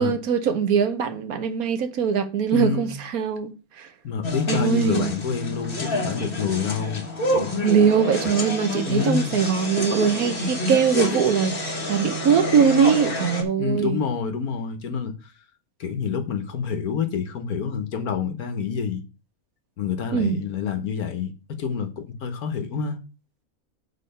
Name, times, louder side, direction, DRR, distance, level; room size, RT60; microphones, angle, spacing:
voice 1, 0.0-3.9 4.5-5.1 7.6-14.0 20.1-20.4, right 7 dB, 75° right, 1.4 m, -22 dB
voice 2, 2.5-3.0 4.0-7.6 8.9-9.4 13.6-15.1 15.8-19.0 19.8-21.3 21.6-23.0, left 6 dB, 80° left, 1.6 m, -27 dB
sound 1, 4.2-13.4, left 1 dB, 40° left, 1.6 m, -28 dB
6.7 x 4.7 x 5.4 m
omnidirectional pair, 1.5 m